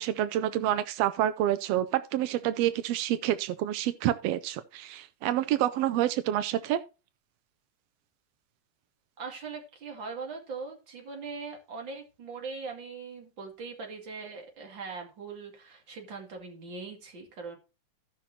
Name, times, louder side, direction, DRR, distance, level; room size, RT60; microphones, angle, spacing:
voice 1, 0.0-6.8, right 12 dB, 85° right, 1.4 m, -28 dB
voice 2, 9.2-17.6, right 4 dB, 40° right, 2.8 m, -41 dB
17.0 x 5.9 x 2.8 m
omnidirectional pair, 3.6 m